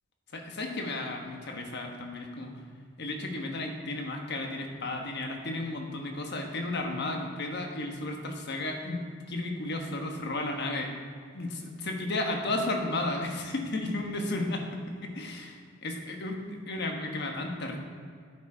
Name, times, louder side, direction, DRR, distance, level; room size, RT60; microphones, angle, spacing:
voice 1, 0.3-2.6 3.0-10.9 11.3-17.8, left 2 dB, 60° left, 3 dB, 1.2 m, -33 dB
9.5 x 9.0 x 3.9 m, 2.1 s
head